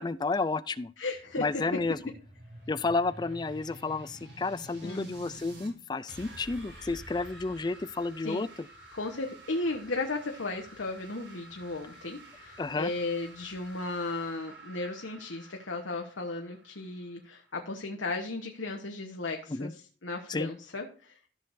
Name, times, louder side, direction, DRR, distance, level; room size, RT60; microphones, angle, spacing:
voice 1, 0.0-0.9 1.4-2.0 2.7-8.5 12.6-12.9 19.5-19.7 20.3-20.5, left 3 dB, 20° left, 16 dB, 0.4 m, -31 dB
voice 2, 1.0-1.6 4.8-5.1 8.2-8.4 8.9-21.2, left 2 dB, 90° left, 3 dB, 1.2 m, -35 dB
sound 1, 1.1-5.7 6.1-17.6, right 1 dB, 85° right, 5.3 m, -50 dB
14.0 x 6.5 x 2.6 m, 0.43 s
head